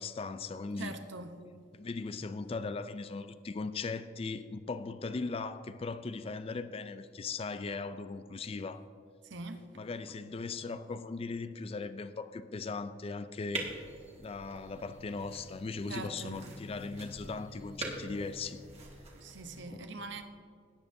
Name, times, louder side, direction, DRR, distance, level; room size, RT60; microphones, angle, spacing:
voice 1, 0.0-0.9 1.7-8.8 9.7-13.7 14.2-18.6 19.7-19.9, left 4 dB, 30° left, 0.4 m, -38 dB
voice 2, 0.8-1.4 9.2-9.6 15.9-16.6 19.2-20.2, right 3 dB, 60° right, 0.8 m, -43 dB
sound 1, 13.5-19.6, right 2 dB, 35° right, 1.6 m, -44 dB
17.5 x 8.9 x 2.7 m
head